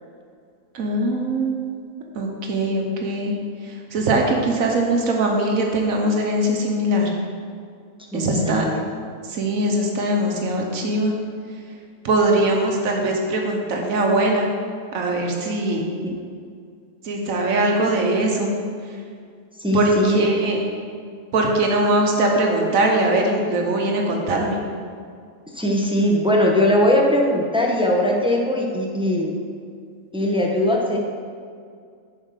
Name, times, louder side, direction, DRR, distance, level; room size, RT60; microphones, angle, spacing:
voice 1, 0.7-1.8 2.1-3.3 3.6-7.1 8.1-8.6 9.3-11.1 12.0-14.5 14.9-15.8 17.0-18.5 19.7-20.6 21.3-24.6, right 1 dB, 80° right, 1 dB, 1.3 m, -21 dB
voice 2, 8.1-8.8 19.6-20.3 25.5-29.3 30.1-31.0, left 1 dB, 5° right, -1 dB, 0.7 m, -20 dB
7.4 x 4.5 x 6.5 m, 2.2 s
omnidirectional pair, 1.4 m